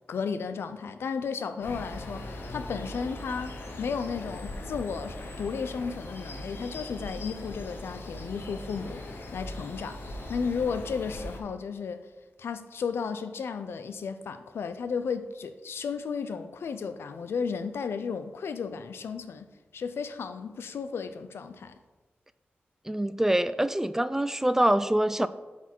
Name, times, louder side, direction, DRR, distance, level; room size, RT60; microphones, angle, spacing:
voice 1, 0.1-12.1 12.4-21.7, left 5 dB, 90° left, 0.4 m, -34 dB
sound 1, 1.6-11.4, left 1 dB, 70° left, 0.9 m, -40 dB
voice 2, 22.9-25.3, right 1 dB, 10° right, 0.3 m, -25 dB
8.0 x 4.2 x 4.5 m
cardioid pair, 70°, 4 cm